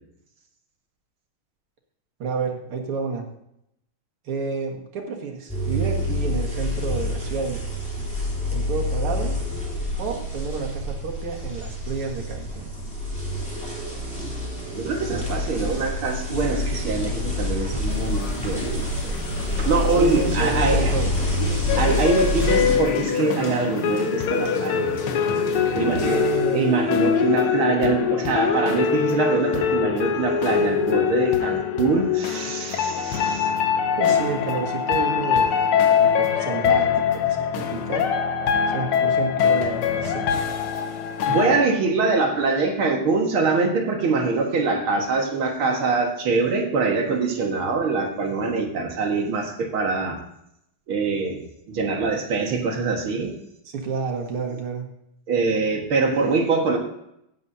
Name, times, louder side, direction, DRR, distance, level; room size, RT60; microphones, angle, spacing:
voice 1, 2.2-3.3 4.2-7.7 8.5-9.4 10.0-12.7 20.0-21.1 25.8-26.8 34.0-38.1 38.7-40.4 53.7-54.9, right 4 dB, 90° right, 1 dB, 2.6 m, -30 dB
sound 1, 5.5-22.8, left 1 dB, 5° left, 3.0 m, -27 dB
voice 2, 14.7-19.1 19.6-20.9 21.8-25.0 25.8-26.2 26.5-33.5 41.3-50.2 50.9-53.3 55.3-56.8, right 4 dB, 70° right, 2 dB, 2.4 m, -24 dB
sound 2, 17.9-26.4, left 4 dB, 60° left, 2.0 m, -35 dB
sound 3, 21.7-41.7, left 7 dB, 80° left, 1.7 m, -23 dB
16.0 x 9.5 x 2.8 m, 0.78 s
omnidirectional pair, 2.4 m